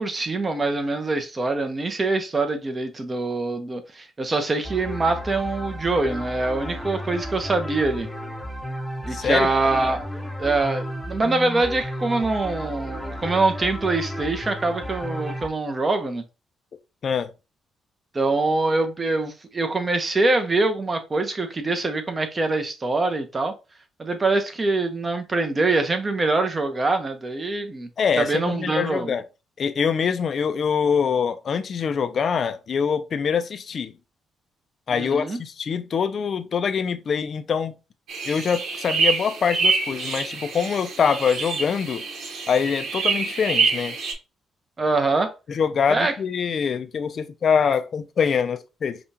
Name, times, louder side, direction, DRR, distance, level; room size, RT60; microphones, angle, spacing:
voice 1, 0.0-8.1 9.0-10.0 10.4-16.2 18.1-23.5 24.0-27.9 28.2-29.1 34.9-35.4 44.8-45.3 45.9-46.1, right 3 dB, 30° right, 0.9 m, -24 dB
sound 1, 4.6-15.5, equal, 5° left, 0.9 m, -33 dB
voice 2, 9.1-9.5 17.0-17.3 28.0-29.2 29.6-33.9 34.9-37.7 38.2-42.1 42.5-44.0 45.5-49.0, left 6 dB, 50° left, 0.5 m, -24 dB
sound 2, 38.1-44.1, right 4 dB, 70° right, 1.3 m, -26 dB
5.0 x 2.4 x 2.8 m
cardioid pair, 90°, 0 cm